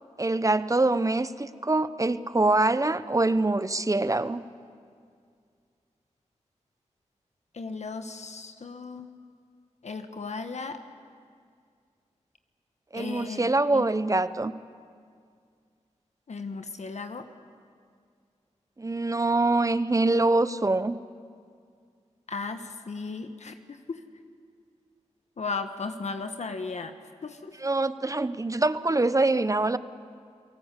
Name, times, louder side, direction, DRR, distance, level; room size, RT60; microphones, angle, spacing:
voice 1, 0.2-4.4 12.9-14.5 18.8-21.0 27.6-29.8, right 2 dB, 25° right, 14 dB, 0.9 m, -24 dB
voice 2, 7.5-9.1 9.8-10.8 12.9-13.8 16.3-17.3 22.3-24.0 25.4-26.9 27.2-27.6, left 4 dB, 65° left, 7 dB, 1.3 m, -36 dB
29.5 x 18.5 x 8.3 m, 2.2 s
cardioid pair, 55°, 13 cm